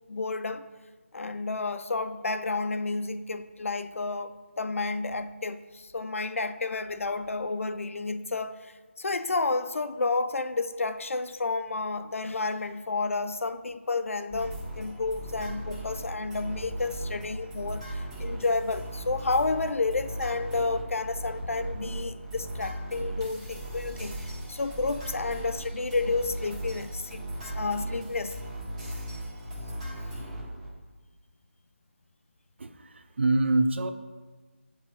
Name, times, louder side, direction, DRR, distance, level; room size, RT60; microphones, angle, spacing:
voice 1, 0.1-0.7 1.1-28.4, left 3 dB, 75° left, 0.4 m, -31 dB
sound 1, 14.3-30.7, right 1 dB, 25° right, 1.3 m, -37 dB
voice 2, 32.6-33.9, right 2 dB, 55° right, 0.5 m, -25 dB
6.8 x 3.0 x 5.4 m
figure-of-eight pair, 165°, 7 cm